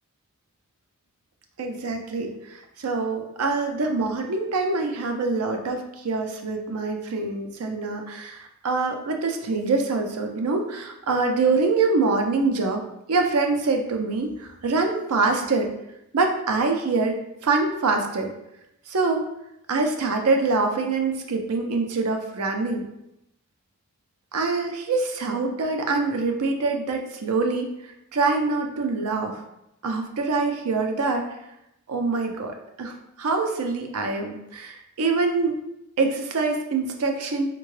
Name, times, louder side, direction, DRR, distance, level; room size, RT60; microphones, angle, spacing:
voice 1, 1.6-12.8 13.1-15.7 16.1-18.3 18.9-19.2 19.7-22.9 24.3-29.4 29.8-31.3 31.9-35.5 36.0-37.5, right 3 dB, 80° right, 4 dB, 0.5 m, -25 dB
3.6 x 2.2 x 3.1 m, 0.84 s
head